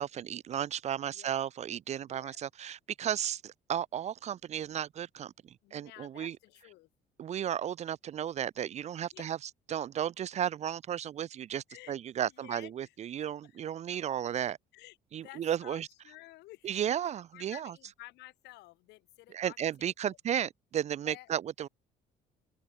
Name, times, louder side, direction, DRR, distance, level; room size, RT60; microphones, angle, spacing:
voice 1, 0.0-5.3 5.7-6.4 7.2-9.4 9.7-14.6 15.1-15.9 16.6-17.7 19.3-21.7, right 10 dB, 40° right, 0.4 m, -34 dB
voice 2, 2.0-2.4 5.6-6.9 9.1-9.3 11.7-12.0 12.2-13.6 13.9-14.0 14.7-16.7 17.0-20.2 21.0-21.3, left 19 dB, 85° left, 4.3 m, -53 dB
open air
cardioid pair, 110°, 17 cm